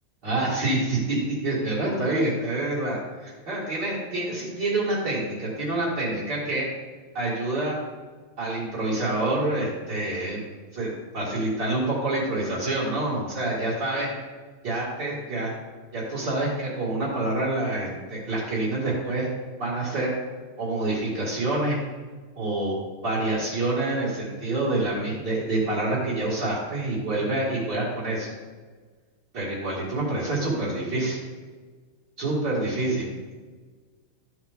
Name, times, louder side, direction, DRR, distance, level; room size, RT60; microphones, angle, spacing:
voice 1, 0.2-6.7 7.1-7.8 8.4-10.4 10.7-14.1 14.6-15.5 15.9-19.3 19.6-20.1 20.6-21.8 22.4-22.8 23.0-28.3 29.3-31.2 32.2-33.0, right 2 dB, 50° right, -10 dB, 3.1 m, -27 dB
13.5 x 7.2 x 3.7 m, 1.4 s
omnidirectional pair, 2.4 m